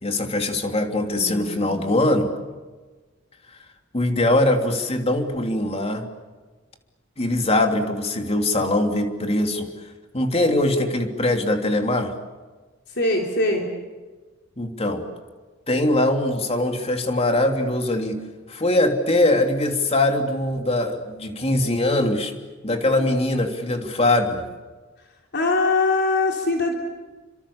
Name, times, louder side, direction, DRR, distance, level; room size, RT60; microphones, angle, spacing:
voice 1, 0.0-2.3 3.9-6.0 7.2-9.7 10.1-12.1 14.6-15.1 15.7-18.2 18.5-22.3 22.6-24.4, left 1 dB, 30° left, 4 dB, 3.2 m, -22 dB
voice 2, 1.1-1.9 12.9-13.7 25.3-26.7, left 2 dB, 60° left, 1 dB, 3.7 m, -22 dB
29.5 x 26.0 x 7.2 m, 1.3 s
head